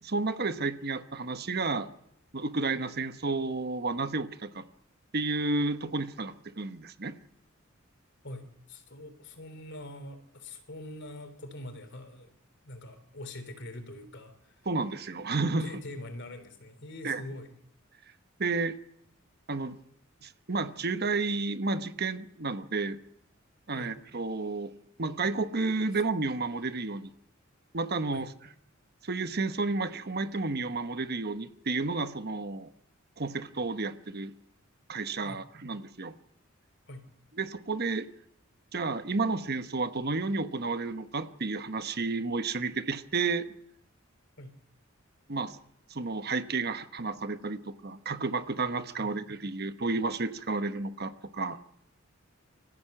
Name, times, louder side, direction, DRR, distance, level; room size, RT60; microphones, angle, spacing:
voice 1, 0.0-1.9 2.3-4.6 5.1-7.2 14.7-15.7 17.0-17.2 18.4-18.7 19.5-19.8 20.2-23.0 23.7-24.7 25.0-27.1 27.7-28.3 29.0-32.7 33.2-34.3 34.9-36.1 37.4-38.1 38.7-43.4 45.3-45.6 45.9-51.6, right 3 dB, 50° right, 10 dB, 1.1 m, -31 dB
voice 2, 8.2-12.4 12.6-14.6 15.6-17.5 23.7-24.0 25.9-26.0 28.1-28.3 35.2-35.4 36.9-37.0 44.4-44.5 49.0-49.1, left 1 dB, 55° left, 8 dB, 3.5 m, -44 dB
25.0 x 15.0 x 7.9 m, 0.76 s
head